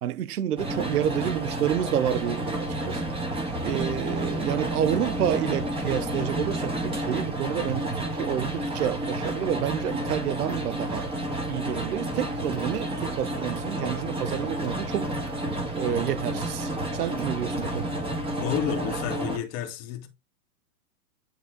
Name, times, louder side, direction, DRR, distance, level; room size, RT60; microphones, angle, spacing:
voice 1, 0.0-3.0 3.6-11.1 11.5-15.1 15.7-18.0, right 10 dB, 75° right, 0.7 m, -29 dB
sound 1, 0.6-19.4, right 1 dB, 10° right, 2.2 m, -30 dB
voice 2, 18.4-20.1, left 9 dB, 30° left, 2.0 m, -31 dB
10.0 x 3.8 x 3.8 m
hypercardioid pair, 135°, 47 cm